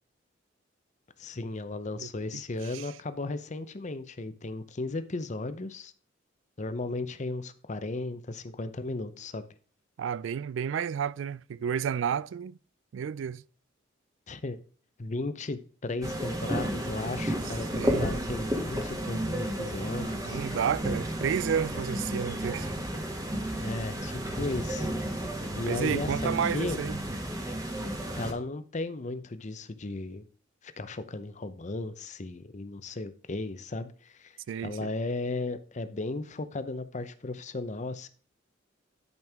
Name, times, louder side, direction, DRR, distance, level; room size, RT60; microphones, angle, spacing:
voice 1, 1.2-5.9 6.6-9.5 14.3-14.6 15.0-20.4 23.6-24.9 25.6-26.8 28.2-30.3 30.6-38.1, left 2 dB, 40° left, 0.7 m, -35 dB
voice 2, 2.0-2.4 2.7-2.9 10.0-12.6 12.9-13.4 17.7-18.1 20.2-22.7 25.6-27.0 34.5-34.9, right 7 dB, 75° right, 0.3 m, -31 dB
sound 1, 16.0-28.3, right 1 dB, 20° right, 1.4 m, -32 dB
10.5 x 5.3 x 3.5 m
head